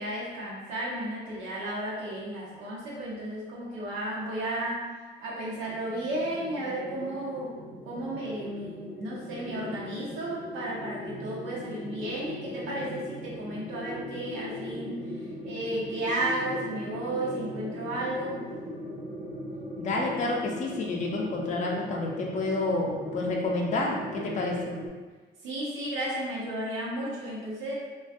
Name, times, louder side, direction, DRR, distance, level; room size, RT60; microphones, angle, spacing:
voice 1, 0.0-4.9 5.2-7.6 7.8-18.5 25.4-27.7, right 1 dB, 90° right, -6 dB, 0.8 m, -33 dB
sound 1, 5.6-24.9, left 1 dB, 15° right, 0.6 m, -39 dB
voice 2, 19.8-24.7, left 2 dB, 40° left, -2 dB, 0.4 m, -29 dB
2.5 x 2.2 x 2.4 m, 1.3 s
cardioid pair, 90°, 20 cm